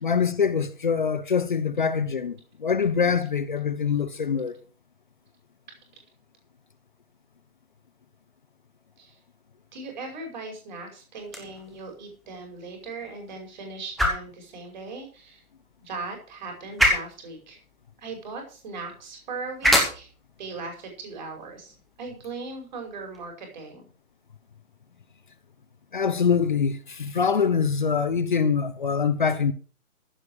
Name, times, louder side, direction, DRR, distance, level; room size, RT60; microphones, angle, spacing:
voice 1, 0.0-4.5 25.9-29.5, left 6 dB, 35° left, 0.8 m, -24 dB
voice 2, 9.7-15.4 15.8-17.6 18.0-20.1 20.4-21.7 22.0-23.8, right 3 dB, 30° right, 5.4 m, -38 dB
sound 1, 11.2-23.2, equal, ahead, 0.5 m, -31 dB
15.0 x 6.9 x 6.5 m
hypercardioid pair, 170°, 43 cm